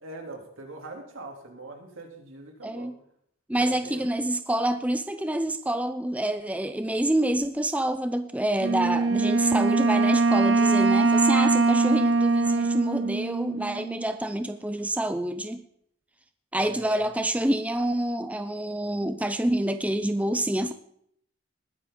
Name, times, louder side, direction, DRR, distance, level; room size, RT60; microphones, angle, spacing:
voice 1, 0.0-2.9 3.5-4.1 16.5-17.0, right 2 dB, 80° right, 1 dB, 3.2 m, -42 dB
voice 2, 2.6-2.9 3.5-15.6 16.5-20.7, right 1 dB, 5° right, 9 dB, 0.5 m, -27 dB
Wind instrument woodwind instrument, 8.6-14.1, right 3 dB, 60° right, 0.9 m, -22 dB
20.0 x 9.7 x 3.9 m, 0.69 s
head